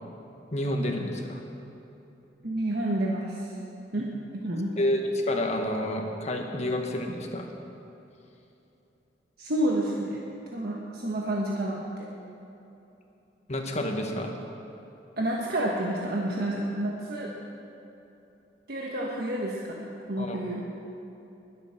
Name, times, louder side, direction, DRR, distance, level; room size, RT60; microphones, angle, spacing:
voice 1, 0.5-1.4 4.8-5.0 5.3-7.5 13.5-14.4 20.2-20.4, left 1 dB, 40° left, 3 dB, 1.5 m, -29 dB
voice 2, 2.4-3.5 3.9-4.1 4.3-4.7 9.4-10.2 10.5-12.1 15.2-17.3 18.7-20.6, right 1 dB, 60° right, -3 dB, 1.3 m, -29 dB
20.5 x 8.1 x 6.0 m, 2.9 s
head